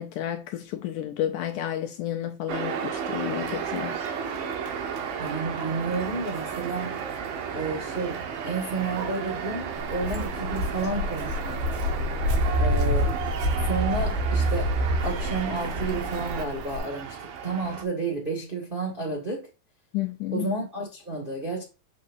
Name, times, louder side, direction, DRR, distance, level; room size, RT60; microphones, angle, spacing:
voice 1, 0.0-4.0 19.9-20.5, left 12 dB, 75° left, 2.0 m, -31 dB
sound 1, 2.5-17.8, right 7 dB, 80° right, 2.6 m, -33 dB
voice 2, 5.2-7.0 7.5-11.6 12.6-13.2 13.6-19.5 20.3-21.6, right 3 dB, 25° right, 1.1 m, -31 dB
Walk footsteps, 9.7-16.8, equal, 55° right, 2.7 m, -27 dB
6.5 x 6.0 x 2.6 m
omnidirectional pair, 4.1 m